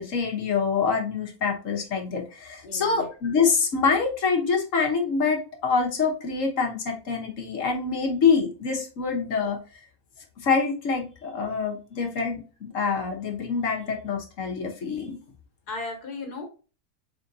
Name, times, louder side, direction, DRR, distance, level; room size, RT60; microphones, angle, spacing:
voice 1, 0.0-9.6 10.4-15.2, left 5 dB, 60° left, 2 dB, 1.5 m, -25 dB
voice 2, 2.6-3.1 15.7-16.5, left 3 dB, 90° left, 2 dB, 1.8 m, -35 dB
4.2 x 4.2 x 2.7 m, 0.35 s
omnidirectional pair, 1.6 m